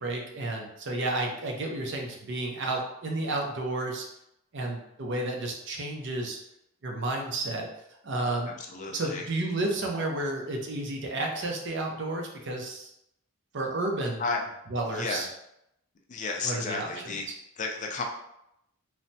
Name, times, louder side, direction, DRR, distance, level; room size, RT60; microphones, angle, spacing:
voice 1, 0.0-4.1 4.5-6.4 6.8-7.7 8.0-8.5 8.9-12.9 13.5-14.2 14.7-15.3 16.4-17.2, right 2 dB, 55° right, 1 dB, 0.5 m, -31 dB
voice 2, 8.7-9.3 14.2-14.5 14.9-15.3 16.1-17.3 17.6-18.0, left 3 dB, 35° left, 2 dB, 0.3 m, -32 dB
3.2 x 2.0 x 2.7 m, 0.80 s
head